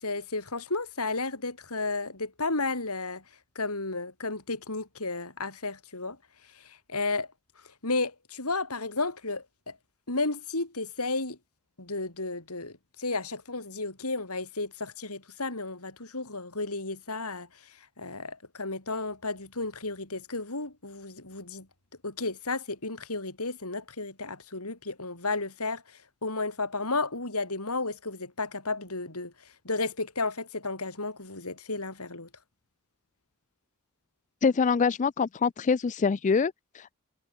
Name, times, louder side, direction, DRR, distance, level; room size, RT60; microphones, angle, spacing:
voice 1, 0.0-3.2 3.6-6.2 6.5-7.3 7.8-9.8 10.1-11.4 11.8-21.7 22.0-32.3, left 3 dB, 85° left, 5.8 m, -33 dB
voice 2, 34.4-36.9, left 5 dB, 35° left, 0.4 m, -25 dB
head